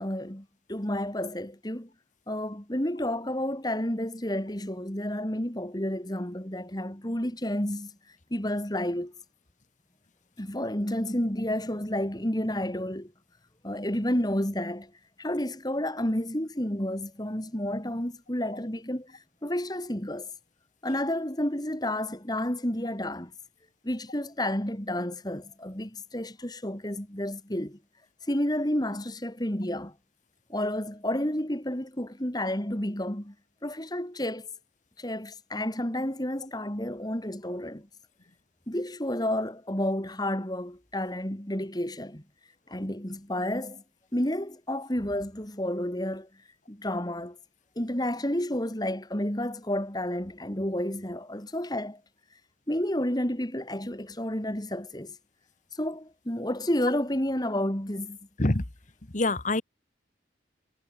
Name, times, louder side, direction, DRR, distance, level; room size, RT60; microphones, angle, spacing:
voice 1, 0.0-1.9 2.3-7.9 8.3-9.1 10.4-13.1 13.6-14.9 15.2-20.3 20.8-23.3 23.8-27.8 28.3-29.9 30.5-33.3 33.6-34.5 35.0-37.9 38.7-42.2 42.7-43.8 44.1-46.3 46.7-47.4 47.8-52.0 52.7-55.2 55.7-58.2, left 1 dB, 20° left, 2.7 m, -30 dB
voice 2, 59.1-59.6, left 2 dB, 40° left, 1.4 m, -24 dB
head